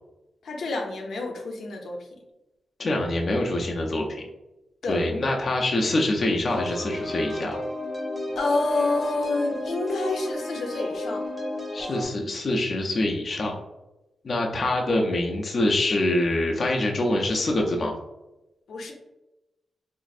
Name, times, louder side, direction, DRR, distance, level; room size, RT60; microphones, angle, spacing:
voice 1, 0.4-2.1 4.8-5.0 8.4-11.3 18.7-18.9, left 2 dB, 90° left, 1 dB, 0.6 m, -28 dB
voice 2, 2.8-4.2 4.9-7.6 11.7-13.6 14.2-17.9, left 1 dB, 40° left, 0 dB, 0.4 m, -25 dB
sound 1, 6.5-12.0, left 1 dB, 20° right, 0.7 m, -32 dB
4.0 x 2.5 x 2.4 m, 0.98 s
wide cardioid pair, 165°, 0 cm